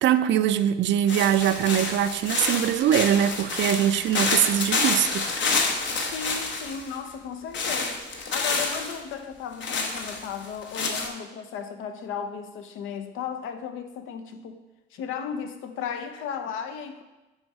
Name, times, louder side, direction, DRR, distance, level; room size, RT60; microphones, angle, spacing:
voice 1, 0.0-5.4, right 10 dB, 65° right, 0.4 m, -22 dB
sound 1, 1.1-7.0 7.5-9.0 9.6-11.1, left 4 dB, 65° left, 1.0 m, -28 dB
voice 2, 6.1-14.6 14.9-17.0, left 7 dB, 90° left, 0.6 m, -35 dB
6.4 x 4.2 x 4.8 m
cardioid pair, 90°, 20 cm